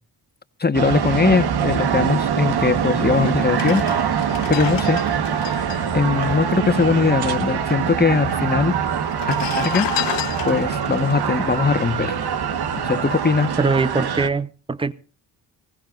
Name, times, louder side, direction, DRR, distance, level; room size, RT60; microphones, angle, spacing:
voice 1, 0.6-4.2 4.5-5.0 5.9-9.9 10.4-12.2 12.8-13.5, left 4 dB, 20° left, 1.4 m, -21 dB
sound 1, 0.7-14.3, right 8 dB, 60° right, 1.5 m, -23 dB
sound 2, 2.8-2.9 3.4-7.1 7.4-7.5 7.6-8.3 9.0-12.5 13.0-13.2, left 15 dB, 75° left, 0.8 m, -32 dB
voice 2, 13.6-14.9, right 3 dB, 10° right, 0.9 m, -22 dB
24.5 x 15.5 x 2.6 m
supercardioid pair, 65°, 44 cm